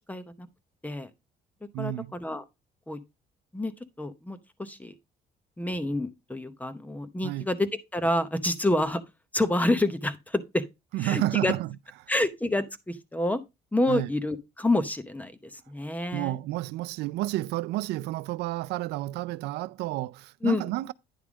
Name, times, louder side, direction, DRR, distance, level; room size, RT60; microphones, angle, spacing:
voice 1, 0.1-0.5 0.8-1.1 1.8-2.4 2.9-3.0 3.5-3.7 4.0-4.9 5.6-9.0 9.3-10.6 11.0-11.5 12.1-13.4 13.7-16.4 20.4-20.6, left 1 dB, 10° left, 0.8 m, -28 dB
voice 2, 1.7-2.1 7.2-7.5 10.9-11.8 12.0-12.1 13.9-14.1 16.1-20.9, right 16 dB, 85° right, 0.4 m, -30 dB
9.9 x 3.4 x 6.1 m
cardioid pair, 110°, 17 cm